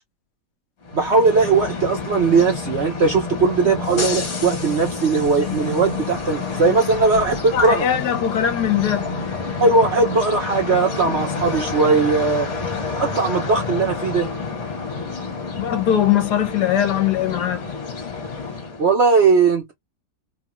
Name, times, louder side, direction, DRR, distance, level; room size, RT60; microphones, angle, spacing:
sound 1, 0.8-18.9, left 4 dB, 45° left, 1.3 m, -28 dB
voice 1, 0.9-7.8 9.6-12.5 13.0-14.3 18.8-19.7, right 4 dB, 60° right, 0.7 m, -18 dB
voice 2, 7.5-9.0 15.6-17.7, left 10 dB, 75° left, 1.2 m, -20 dB
3.2 x 2.2 x 2.9 m
omnidirectional pair, 1.9 m